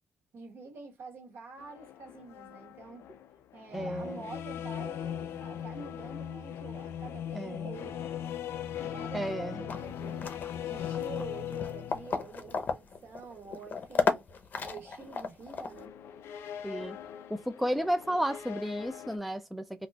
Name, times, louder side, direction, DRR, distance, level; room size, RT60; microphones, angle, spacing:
voice 1, 0.3-3.1 3.5-8.0 8.8-10.3 10.6-14.2 14.6-15.9, right 4 dB, 70° right, 1.4 m, -47 dB
sound 1, 1.6-12.5 15.7-19.2, left 10 dB, 90° left, 0.4 m, -39 dB
voice 2, 3.7-4.2 7.3-7.7 9.1-9.6 16.6-17.0 17.3-19.9, equal, ahead, 0.3 m, -33 dB
sound 2, 9.7-15.8, left 5 dB, 45° left, 0.6 m, -35 dB
4.0 x 2.2 x 2.3 m
cardioid pair, 135°, 4 cm